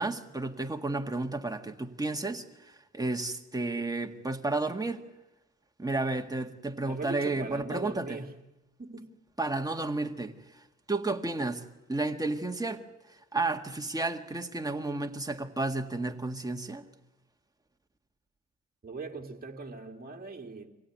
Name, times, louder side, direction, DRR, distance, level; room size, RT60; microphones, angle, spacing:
voice 1, 0.0-5.0 5.8-8.3 9.4-10.3 10.9-11.6 11.9-12.8 13.3-16.8, right 2 dB, 10° right, 1.8 m, -32 dB
voice 2, 6.8-8.4 8.8-9.1 18.8-20.7, right 3 dB, 30° right, 2.7 m, -40 dB
25.0 x 16.5 x 9.5 m
cardioid pair, 80°, 29 cm